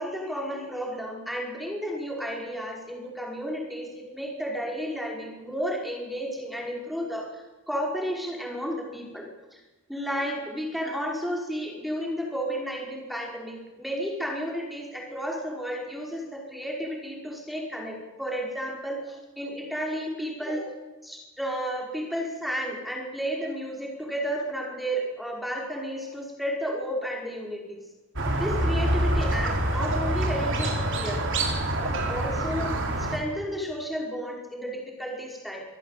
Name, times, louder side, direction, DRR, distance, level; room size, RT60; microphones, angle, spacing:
voice 1, 0.0-9.6 9.9-20.7 21.0-27.8 28.3-31.2 31.8-32.7 33.0-35.6, equal, ahead, -1 dB, 5.2 m, -32 dB
Squeak, 28.2-33.2, right 1 dB, 60° right, 4.1 m, -26 dB
24.5 x 16.0 x 8.4 m, 1.1 s
head